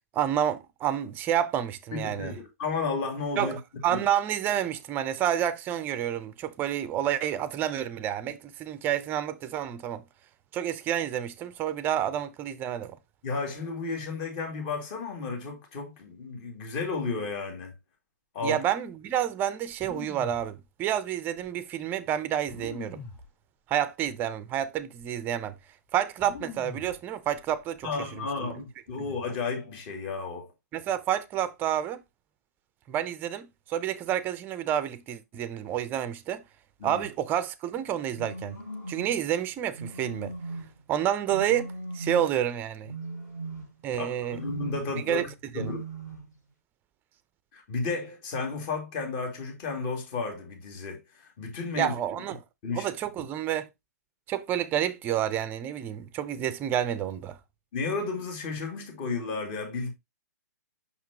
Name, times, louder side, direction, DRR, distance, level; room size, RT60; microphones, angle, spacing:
voice 1, 0.1-2.3 3.4-10.0 10.5-13.0 18.4-23.0 23.7-25.5 25.9-27.9 28.2-28.5 30.7-32.0 32.9-36.4 36.8-38.6 38.9-40.3 40.9-42.9 43.8-44.4 44.9-45.3 45.5-45.7 51.8-52.4 52.7-53.7 54.3-57.4, right 10 dB, 20° right, 0.6 m, -29 dB
voice 2, 1.9-3.6 3.9-4.0 13.2-17.7 18.3-18.6 27.8-30.5 36.8-37.0 44.0-45.3 45.5-45.8 47.5-51.9 52.6-52.9 57.7-59.9, left 4 dB, 35° left, 2.6 m, -33 dB
sound 1, 19.7-20.5 21.4-21.5 22.5-23.3 24.1-24.2 24.5-25.0 26.2-27.0 27.3-27.8, left 5 dB, 15° left, 2.5 m, -43 dB
sound 2, 38.1-39.2 39.7-40.8 41.3-42.4 42.8-43.9 44.3-45.0 45.5-46.3, right 3 dB, 85° left, 4.1 m, -38 dB
5.9 x 5.8 x 3.0 m
figure-of-eight pair, 125°, 9 cm